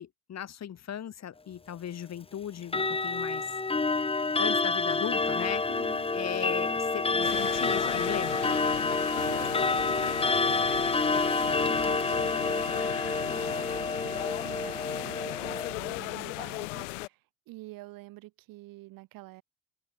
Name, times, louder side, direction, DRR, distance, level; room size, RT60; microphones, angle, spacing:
voice 1, 0.0-3.5 4.4-5.6 6.1-8.4, left 9 dB, 45° left, 3.2 m, -37 dB
Clock, 2.6-15.7, left 3 dB, 15° left, 1.4 m, -28 dB
voice 2, 5.7-6.1 8.7-19.4, right 19 dB, 60° right, 4.3 m, -47 dB
sound 1, 7.2-17.1, left 23 dB, 70° left, 0.7 m, -37 dB
figure-of-eight pair, 55°, 38 cm